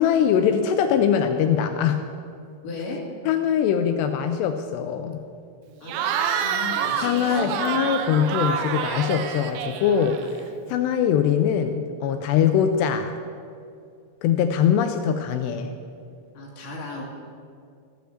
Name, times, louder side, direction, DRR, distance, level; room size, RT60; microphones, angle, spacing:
voice 1, 0.0-2.0 3.3-5.2 7.0-10.3 10.7-13.2 14.2-15.7, left 8 dB, 85° left, 8 dB, 2.5 m, -22 dB
voice 2, 2.6-3.0 5.8-5.9 6.4-7.8 10.6-10.9 16.3-17.0, left 3 dB, 50° left, -3 dB, 3.5 m, -36 dB
Cheering / Crowd, 5.9-10.5, right 7 dB, 80° right, 2.8 m, -27 dB
15.0 x 6.8 x 7.8 m, 2.4 s
omnidirectional pair, 5.3 m